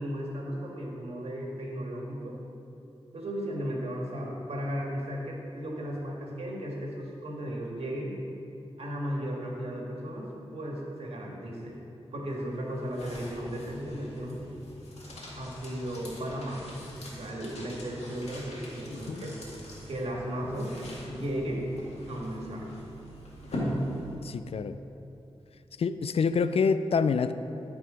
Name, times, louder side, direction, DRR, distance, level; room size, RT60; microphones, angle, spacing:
voice 1, 0.0-2.4 3.1-8.2 8.8-11.8 12.1-14.4 15.4-16.8 17.2-19.4 19.9-20.7 21.1-21.7 22.1-22.7, equal, 70° right, -2 dB, 1.7 m, -35 dB
sound 1, 12.3-24.4, equal, 85° left, 2.0 m, -40 dB
voice 2, 18.9-19.2 24.2-24.8 25.8-27.3, left 5 dB, 65° left, 12 dB, 0.4 m, -27 dB
13.0 x 4.8 x 5.0 m, 2.9 s
wide cardioid pair, 80°, 11 cm